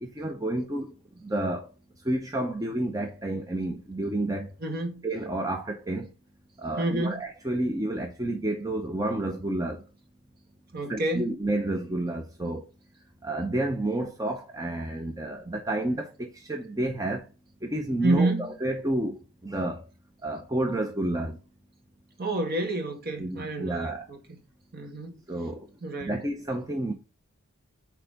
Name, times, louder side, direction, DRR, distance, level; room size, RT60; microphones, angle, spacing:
voice 1, 0.0-0.9 1.2-1.7 2.0-4.5 5.0-6.1 6.6-9.8 10.9-12.6 13.2-17.3 17.6-19.8 20.2-21.4 23.2-24.1 25.3-25.7 26.0-26.9, right 1 dB, 15° right, 0.8 m, -30 dB
voice 2, 4.6-5.1 6.8-7.2 10.7-11.3 18.0-18.5 22.2-24.2 24.7-25.2 25.8-26.1, right 2 dB, 45° right, 2.2 m, -29 dB
6.7 x 4.6 x 5.2 m
head